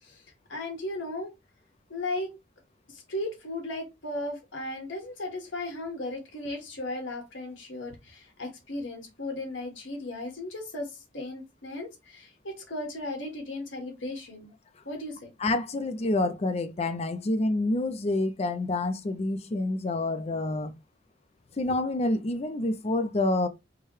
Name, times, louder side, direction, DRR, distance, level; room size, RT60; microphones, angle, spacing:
voice 1, 0.5-1.3 1.9-2.3 2.9-14.5 14.8-15.3, left 2 dB, 85° left, 1.5 m, -36 dB
voice 2, 15.4-20.7 21.6-23.5, left 2 dB, 35° left, 0.4 m, -28 dB
4.6 x 2.2 x 3.1 m
head